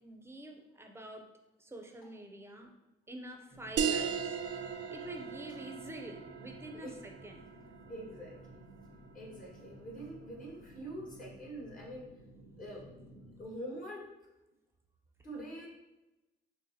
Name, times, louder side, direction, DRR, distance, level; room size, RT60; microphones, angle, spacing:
voice 1, 0.0-1.3 1.6-2.7 3.1-4.4 4.9-7.4, right 1 dB, 10° right, 3 dB, 0.6 m, -47 dB
sound 1, 3.5-13.5, right 2 dB, 85° left, 1.4 m, -55 dB
sound 2, 3.8-8.8, right 7 dB, 65° right, 0.4 m, -37 dB
voice 2, 7.9-8.7 9.1-12.0 12.6-13.1 13.4-14.1 15.2-15.7, right 1 dB, 45° left, -3 dB, 1.3 m, -45 dB
6.2 x 2.1 x 2.8 m, 0.99 s
cardioid pair, 90°, 20 cm